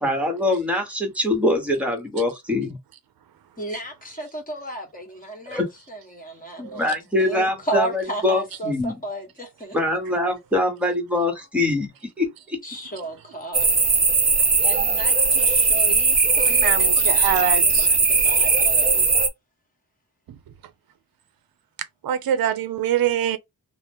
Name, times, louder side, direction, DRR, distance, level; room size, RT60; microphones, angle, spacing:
voice 1, 0.0-2.8 5.5-5.7 6.6-8.9 9.7-11.9 12.2-12.6, left 1 dB, 5° right, 1.0 m, -23 dB
voice 2, 3.6-6.9 7.2-9.8 10.1-10.2 12.6-14.0 14.6-19.1, right 2 dB, 25° left, 1.2 m, -34 dB
sound 1, 13.5-19.3, right 4 dB, 25° right, 0.5 m, -19 dB
voice 3, 16.6-17.9 22.0-23.4, right 9 dB, 70° right, 0.5 m, -24 dB
2.8 x 2.0 x 3.4 m
wide cardioid pair, 130°, 37 cm